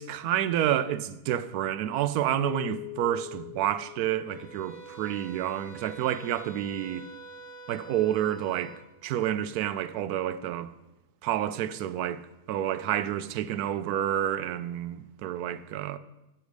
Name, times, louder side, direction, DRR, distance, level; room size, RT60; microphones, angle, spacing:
voice 1, 0.0-7.1 7.7-8.8 9.0-10.7 11.2-12.2 12.5-16.0, right 11 dB, 85° right, 1.1 m, -29 dB
Keyboard (musical), 2.4-5.3, left 17 dB, 65° left, 0.5 m, -42 dB
sound 1, 4.3-8.8, right 3 dB, 15° left, 2.0 m, -46 dB
8.1 x 7.1 x 6.6 m
omnidirectional pair, 1.6 m